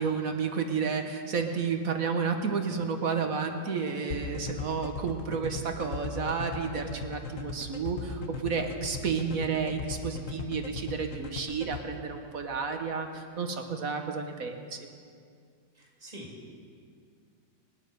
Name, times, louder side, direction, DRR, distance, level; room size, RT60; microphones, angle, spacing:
voice 1, 0.0-14.9, right 5 dB, 55° right, 5 dB, 1.4 m, -31 dB
sound 1, 4.1-11.8, left 6 dB, 50° left, 1.2 m, -37 dB
voice 2, 15.7-16.5, equal, 25° right, -2 dB, 2.5 m, -45 dB
26.5 x 9.7 x 5.3 m, 2.2 s
omnidirectional pair, 1.9 m